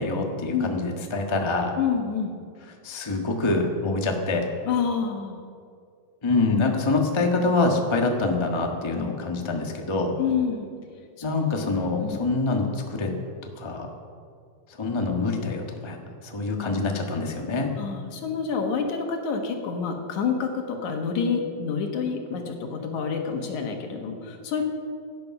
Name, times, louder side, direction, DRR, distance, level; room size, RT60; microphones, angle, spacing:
voice 1, 0.0-1.7 2.7-4.5 6.2-10.1 11.2-13.1 13.6-13.9 14.8-16.0 16.2-17.7, left 3 dB, 35° left, 2 dB, 0.4 m, -25 dB
voice 2, 1.8-2.3 4.7-5.4 10.2-10.7 12.0-12.2 17.8-24.7, left 6 dB, 75° left, 3 dB, 2.9 m, -28 dB
17.0 x 10.5 x 6.0 m, 2.2 s
omnidirectional pair, 3.4 m